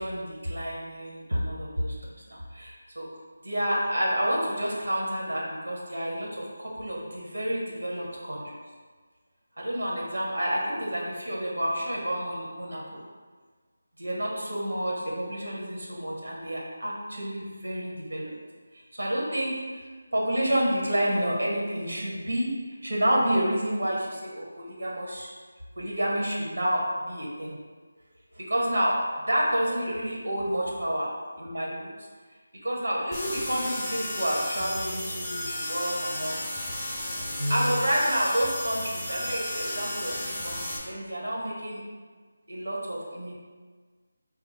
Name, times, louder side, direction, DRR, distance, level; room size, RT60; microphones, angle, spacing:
voice 1, 0.0-1.9 2.3-3.1 3.4-8.6 9.6-13.0 14.0-18.3 18.7-22.5 22.8-25.3 25.8-27.6 28.3-31.1 31.4-32.1 32.6-36.4 37.4-41.8 42.5-43.3, equal, 70° right, -3 dB, 1.3 m, -29 dB
sound 1, 33.1-40.8, left 1 dB, 5° left, 0.3 m, -33 dB
4.4 x 2.1 x 4.4 m, 1.5 s
figure-of-eight pair, 180°, 0 cm